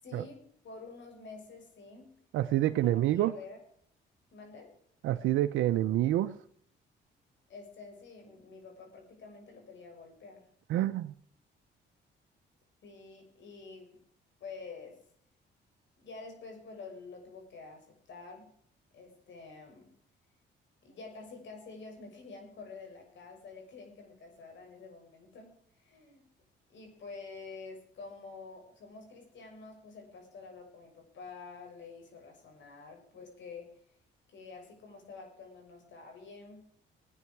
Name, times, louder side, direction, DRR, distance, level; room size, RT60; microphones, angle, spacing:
voice 1, 0.0-2.2 2.6-3.6 4.3-4.7 7.5-10.9 12.8-14.0 14.4-15.0 16.0-18.5 18.9-19.9 20.8-26.2 26.7-33.7 34.3-36.7, left 4 dB, 65° left, 3 dB, 6.7 m, -48 dB
voice 2, 2.3-3.3 5.0-6.3 10.7-11.1, right 13 dB, 90° right, 8 dB, 0.8 m, -27 dB
21.5 x 9.7 x 4.7 m, 0.64 s
cardioid pair, 90°, 20 cm